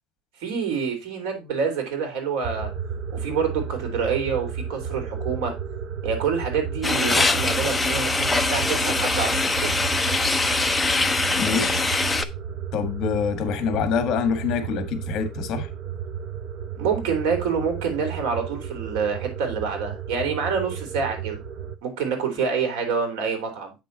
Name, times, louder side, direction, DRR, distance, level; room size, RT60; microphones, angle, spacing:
voice 1, 0.4-2.7 3.1-5.5 6.0-9.6 16.7-21.4 21.8-23.7, right 6 dB, 85° right, 3.3 m, -27 dB
sound 1, 2.4-21.8, right 7 dB, 40° right, 0.8 m, -33 dB
sound 2, 6.8-12.2, left 3 dB, 10° left, 0.5 m, -23 dB
voice 2, 11.4-11.9 12.7-15.7, left 6 dB, 45° left, 1.6 m, -26 dB
8.3 x 6.1 x 4.1 m
cardioid pair, 170°, 0 cm